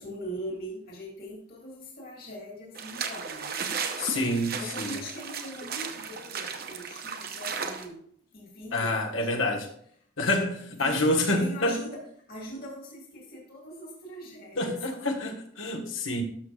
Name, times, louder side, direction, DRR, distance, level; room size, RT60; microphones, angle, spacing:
voice 1, 0.0-4.2 4.5-8.0 8.3-9.5 10.8-12.0 12.3-15.3, equal, 45° left, 2.1 m, -41 dB
sound 1, 2.8-7.9, right 6 dB, 50° right, 0.8 m, -35 dB
voice 2, 4.0-5.0 8.7-9.7 10.2-11.8 14.6-16.2, left 1 dB, 75° left, 1.4 m, -27 dB
12.0 x 6.5 x 2.4 m
head